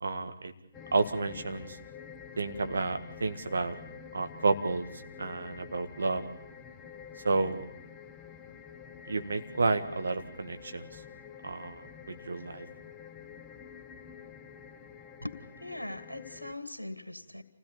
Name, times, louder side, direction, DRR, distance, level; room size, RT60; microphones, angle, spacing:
voice 1, 0.0-0.5 0.9-1.8 2.4-3.7 4.1-4.9 5.2-6.2 7.2-7.6 9.0-11.0 11.4-12.7, right 3 dB, 60° right, 7 dB, 1.7 m, -31 dB
sound 1, 0.7-16.5, left 7 dB, 10° left, 1.0 m, -48 dB
voice 2, 15.6-17.4, left 1 dB, 85° left, 10 dB, 1.9 m, -40 dB
27.5 x 16.5 x 7.0 m, 0.82 s
figure-of-eight pair, 140°, 0 cm